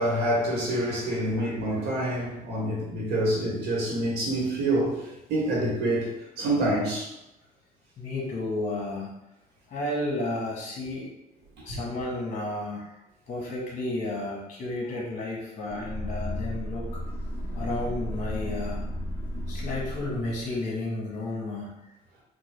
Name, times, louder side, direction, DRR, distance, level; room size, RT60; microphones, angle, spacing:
voice 1, 0.0-6.1 6.4-7.1 11.7-11.8, right 1 dB, 80° right, -4 dB, 1.1 m, -27 dB
voice 2, 8.0-9.1 9.7-11.1 11.6-12.9 13.3-17.0 17.5-18.8 19.5-21.7, left 2 dB, 45° left, -3 dB, 1.1 m, -32 dB
sound 1, 15.7-20.6, equal, 20° left, 0.6 m, -34 dB
3.6 x 2.2 x 3.2 m, 0.89 s
cardioid pair, 110°, 17 cm